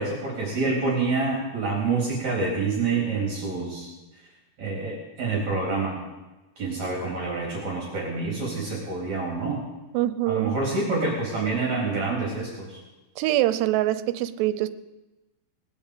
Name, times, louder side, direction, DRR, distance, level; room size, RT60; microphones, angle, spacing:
voice 1, 0.0-3.9 4.6-5.9 6.6-9.6 10.3-12.8, right 3 dB, 45° right, 4.8 m, -27 dB
voice 2, 9.9-10.5 13.2-14.7, right 14 dB, 90° right, 2.9 m, -24 dB
19.5 x 8.8 x 8.3 m
omnidirectional pair, 4.7 m